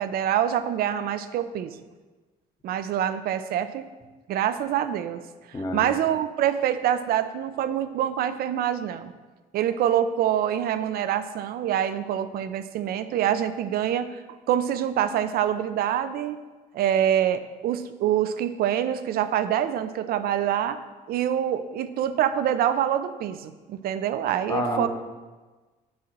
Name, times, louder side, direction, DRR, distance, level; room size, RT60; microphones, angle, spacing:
voice 1, 0.0-1.8 2.6-3.9 4.3-5.2 5.7-9.1 9.5-14.1 14.5-16.4 16.7-20.8 21.1-24.9, right 10 dB, 65° right, 12 dB, 0.5 m, -25 dB
voice 2, 5.5-5.9 24.5-24.9, left 1 dB, 20° left, 3 dB, 0.9 m, -28 dB
7.2 x 3.8 x 6.0 m, 1.3 s
cardioid pair, 110°, 17 cm